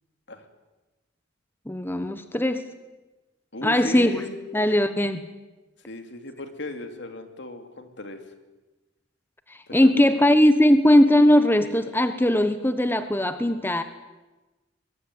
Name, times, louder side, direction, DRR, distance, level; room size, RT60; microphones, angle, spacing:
voice 1, 1.7-2.7 3.6-4.2 4.5-5.3 9.5-13.8, left 1 dB, 10° left, 10 dB, 1.1 m, -19 dB
voice 2, 3.5-4.4 5.9-8.2 9.7-9.9, left 1 dB, 65° left, 7 dB, 2.9 m, -36 dB
23.0 x 22.0 x 9.6 m, 1.1 s
head